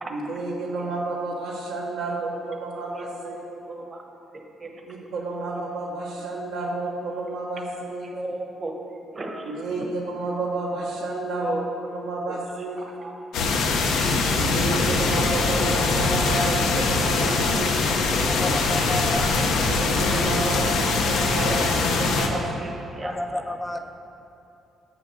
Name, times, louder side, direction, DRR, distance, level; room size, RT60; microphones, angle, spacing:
voice 1, 0.1-3.4 4.9-8.1 9.5-11.5 11.9-12.8 14.3-17.7 19.7-21.6 22.0-22.5, right 2 dB, 85° right, -3 dB, 1.5 m, -30 dB
voice 2, 2.8-4.0 4.3-5.1 8.1-9.6 11.3-11.7 12.3-12.4 12.8-13.1 16.0-16.5 21.4-21.5 22.6-23.4, right 2 dB, 35° right, 2 dB, 1.1 m, -36 dB
sound 1, 13.3-22.3, left 3 dB, 90° left, 0.8 m, -22 dB
voice 3, 18.4-19.6 23.0-23.9, left 1 dB, 10° left, 6 dB, 0.5 m, -31 dB
7.0 x 5.9 x 6.3 m, 2.8 s
cardioid pair, 90°, 0 cm